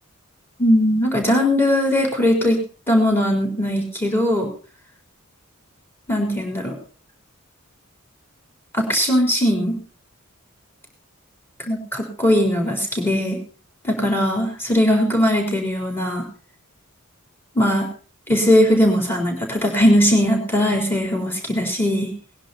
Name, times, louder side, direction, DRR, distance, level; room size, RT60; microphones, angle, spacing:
voice 1, 0.6-2.6 2.9-4.5 6.1-6.8 8.7-9.8 11.7-13.4 13.8-16.2 17.6-17.9 18.3-22.1, equal, 10° left, 1 dB, 4.0 m, -19 dB
19.5 x 10.5 x 4.3 m, 0.38 s
head